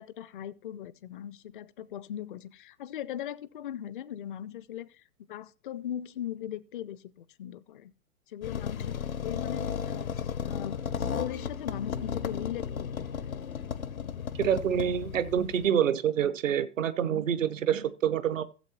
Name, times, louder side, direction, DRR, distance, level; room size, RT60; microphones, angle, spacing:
voice 1, 0.0-7.9 8.3-13.3 14.1-14.2, left 11 dB, 40° left, 0.5 m, -39 dB
sound 1, 8.4-15.7, left 7 dB, 75° left, 0.8 m, -34 dB
voice 2, 14.4-18.4, right 9 dB, 60° right, 0.9 m, -27 dB
16.0 x 7.8 x 2.8 m
figure-of-eight pair, 105°, 43 cm